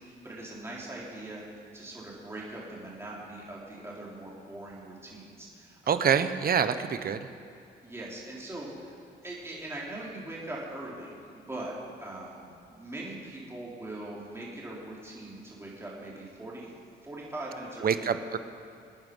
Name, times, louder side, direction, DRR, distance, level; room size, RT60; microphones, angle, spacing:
voice 1, 0.0-6.1 7.8-9.0 9.2-16.7 17.0-18.2, right 1 dB, 15° right, -5 dB, 3.7 m, -41 dB
voice 2, 5.9-7.3 17.8-18.4, right 7 dB, 50° right, 11 dB, 1.0 m, -26 dB
24.5 x 9.3 x 5.4 m, 2.6 s
cardioid pair, 90°, 20 cm